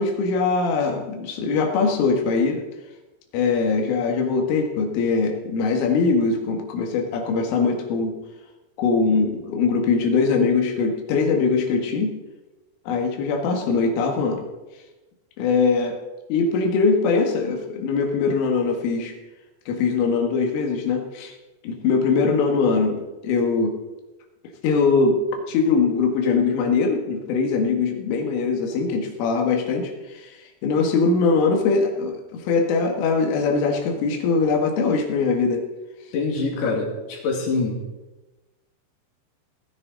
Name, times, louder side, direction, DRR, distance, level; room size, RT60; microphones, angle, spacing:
voice 1, 0.0-2.6 3.3-8.1 8.8-12.2 12.9-14.4 15.4-16.0 16.3-19.1 19.7-21.3 21.6-23.0 23.2-23.7 24.6-30.4 30.6-35.6, left 4 dB, 90° left, 2 dB, 4.3 m, -22 dB
voice 2, 36.1-37.8, left 3 dB, 60° left, -1 dB, 4.2 m, -25 dB
18.0 x 10.0 x 3.9 m, 1.1 s
omnidirectional pair, 5.6 m